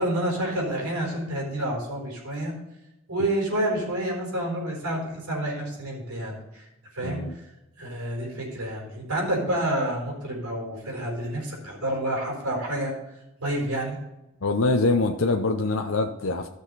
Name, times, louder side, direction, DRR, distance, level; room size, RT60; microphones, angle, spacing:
voice 1, 0.0-2.5 3.1-6.6 6.9-7.4 7.8-12.9 13.4-14.0, right 1 dB, 90° right, -1 dB, 4.1 m, -29 dB
voice 2, 7.0-7.4 14.4-16.5, left 3 dB, 65° left, 4 dB, 0.7 m, -24 dB
14.5 x 6.4 x 4.1 m, 0.94 s
head